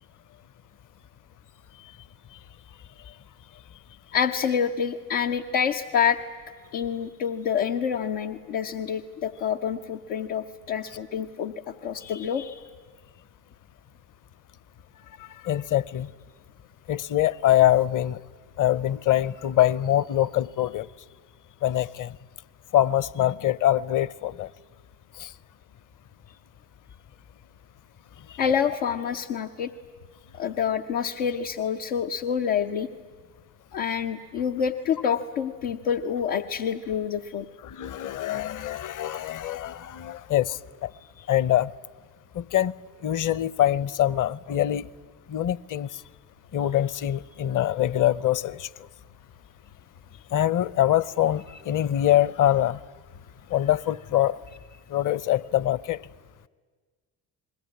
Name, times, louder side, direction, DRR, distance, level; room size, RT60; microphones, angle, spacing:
voice 1, 4.1-6.2 6.7-12.7 28.4-29.7 30.3-32.9 33.7-37.5, left 7 dB, 80° left, 1.0 m, -27 dB
voice 2, 15.4-16.1 16.9-18.2 18.6-20.9 21.6-22.1 22.7-24.5 25.2-25.3 37.6-40.9 41.3-41.7 42.3-42.7 43.0-44.9 45.3-46.0 46.5-48.7 50.3-52.8 53.5-54.4 54.9-56.0, left 12 dB, 40° left, 0.8 m, -24 dB
29.0 x 21.0 x 9.6 m
hypercardioid pair, 55°, 50 cm